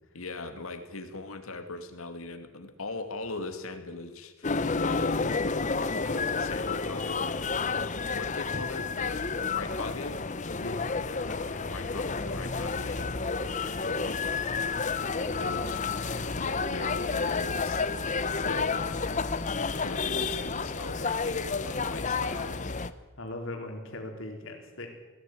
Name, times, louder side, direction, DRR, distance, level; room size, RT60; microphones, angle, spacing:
voice 1, 0.1-5.3 6.0-10.2 10.9-11.3 11.5-19.3 19.7-22.8, left 2 dB, 90° left, 7 dB, 2.5 m, -41 dB
sound 1, 4.4-22.9, left 4 dB, 35° left, 0.8 m, -30 dB
voice 2, 10.6-11.8 23.2-24.9, left 1 dB, 65° left, 3 dB, 4.0 m, -40 dB
19.5 x 15.5 x 9.4 m, 1.3 s
head